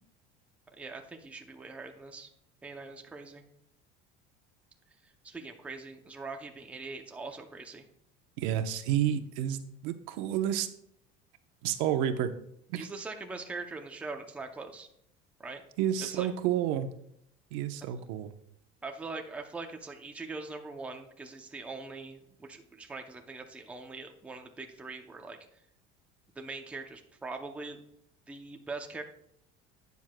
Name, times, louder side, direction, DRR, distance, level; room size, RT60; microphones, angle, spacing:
voice 1, 0.8-2.3 2.6-3.4 5.0-7.8 12.7-14.9 15.4-15.6 16.1-16.3 18.8-25.4 26.4-27.8 28.3-29.0, right 3 dB, 5° right, 3 dB, 0.6 m, -42 dB
voice 2, 8.4-10.7 11.6-12.3 12.7-12.9 15.8-16.9 17.5-18.3, right 10 dB, 75° right, 8 dB, 0.9 m, -30 dB
12.0 x 9.4 x 2.3 m, 0.70 s
cardioid pair, 175°, 18 cm